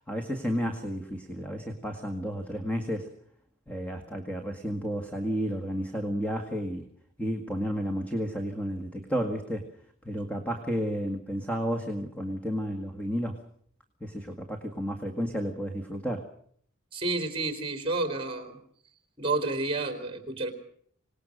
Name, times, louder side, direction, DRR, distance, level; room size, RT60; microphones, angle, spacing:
voice 1, 0.1-3.1 3.7-6.8 7.2-9.6 10.0-13.4 14.0-16.3, equal, 5° left, 4 dB, 1.8 m, -32 dB
voice 2, 16.9-18.6 19.2-20.5, right 2 dB, 25° right, 6 dB, 3.7 m, -30 dB
26.0 x 19.0 x 6.6 m, 0.63 s
head